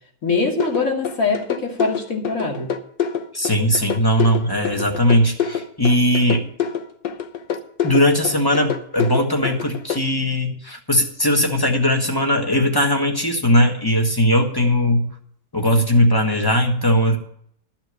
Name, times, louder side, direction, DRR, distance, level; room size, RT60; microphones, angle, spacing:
voice 1, 0.2-2.7, left 4 dB, 50° left, 0 dB, 2.8 m, -23 dB
sound 1, 0.6-10.0, left 8 dB, 75° left, 1.6 m, -26 dB
voice 2, 3.3-6.5 7.8-15.1 15.5-17.2, equal, 15° left, 3 dB, 1.3 m, -19 dB
13.0 x 6.1 x 8.0 m, 0.65 s
omnidirectional pair, 1.9 m